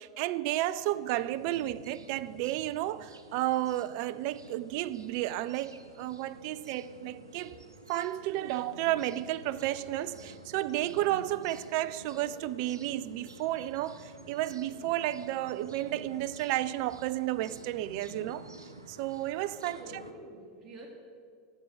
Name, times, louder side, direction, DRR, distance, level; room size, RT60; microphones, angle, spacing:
voice 1, 0.0-7.6 7.9-18.5 18.9-20.0, right 14 dB, 50° right, 0.4 m, -32 dB
sound 1, 0.7-20.1, right 2 dB, 85° right, 0.9 m, -50 dB
voice 2, 19.6-20.9, right 1 dB, 25° right, 3.5 m, -47 dB
11.0 x 8.4 x 7.7 m
figure-of-eight pair, 85°, 2 cm